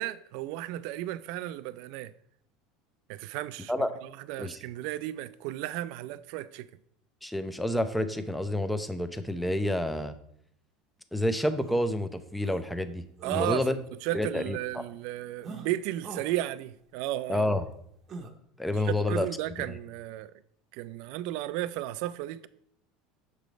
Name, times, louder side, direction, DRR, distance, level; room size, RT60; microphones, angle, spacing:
voice 1, 0.0-2.1 3.1-6.7 13.2-17.5 18.8-20.3 20.7-22.5, right 14 dB, 65° right, 0.3 m, -34 dB
voice 2, 7.2-10.1 11.1-13.0 13.3-13.8 14.1-14.6 17.3-17.6 18.6-19.3, left 1 dB, 5° left, 0.4 m, -28 dB
sound 1, 11.6-11.8 12.4-12.6 13.2-13.5 15.4-15.7 16.0-16.3 18.1-18.3, right 4 dB, 35° right, 0.7 m, -41 dB
6.6 x 3.1 x 5.1 m
supercardioid pair, 130°, 0 cm